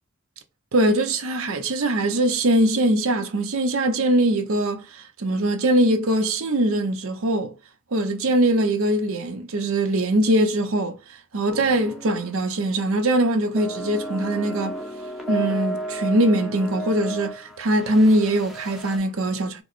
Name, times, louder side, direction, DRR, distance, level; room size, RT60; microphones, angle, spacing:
voice 1, 0.7-7.5 7.9-11.0 11.3-14.8 15.3-19.6, right 1 dB, 75° right, 0.7 m, -22 dB
sound 1, 11.5-12.3 12.6-12.8 13.6-19.0, right 1 dB, ahead, 0.6 m, -33 dB
4.5 x 2.0 x 2.5 m
head